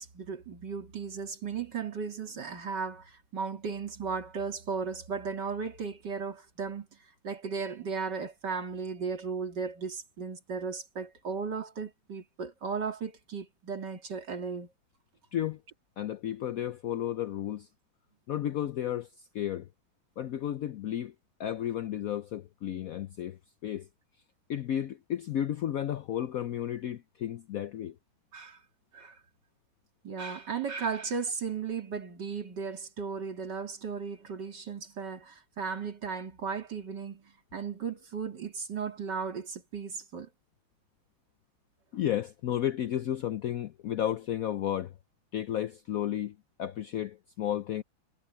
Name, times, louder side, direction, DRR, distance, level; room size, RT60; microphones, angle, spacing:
voice 1, 0.0-14.7 28.3-28.6 28.9-29.2 30.0-40.3, right 5 dB, 55° right, 3.2 m, -36 dB
voice 2, 16.0-17.7 18.3-19.1 19.3-19.7 20.2-21.1 21.4-23.9 24.5-27.9 41.9-44.9 45.3-47.8, left 11 dB, 85° left, 0.7 m, -33 dB
omnidirectional pair, 2.2 m